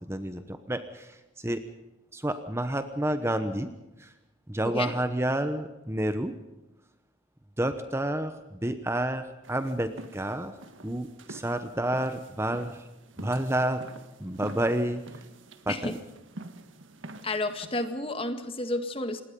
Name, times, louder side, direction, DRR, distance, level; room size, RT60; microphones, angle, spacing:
voice 1, 0.0-1.6 2.1-3.7 4.0-4.1 4.5-6.3 7.6-10.5 10.8-12.9 13.2-13.8 14.2-15.2 15.7-16.0, right 1 dB, 15° right, 9 dB, 1.0 m, -30 dB
sound 1, 9.4-17.9, right 1 dB, 80° right, 1.7 m, -47 dB
voice 2, 17.2-19.2, left 2 dB, 30° left, 8 dB, 1.9 m, -31 dB
27.0 x 20.0 x 5.4 m, 1.0 s
head